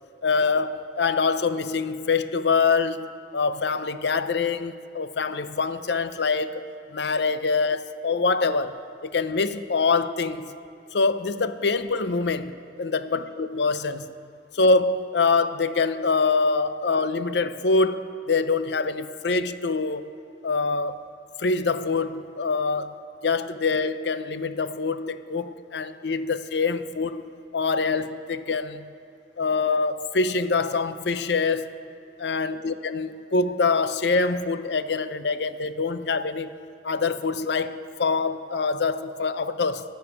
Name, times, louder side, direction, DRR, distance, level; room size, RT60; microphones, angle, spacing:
voice 1, 0.2-6.6 6.9-8.7 9.0-10.5 10.9-14.1 14.5-20.1 20.4-21.0 21.4-27.3 27.5-28.9 29.4-31.7 32.2-36.5 36.8-39.8, left 4 dB, 65° left, 12 dB, 0.6 m, -25 dB
20.0 x 7.0 x 8.3 m, 2.5 s
head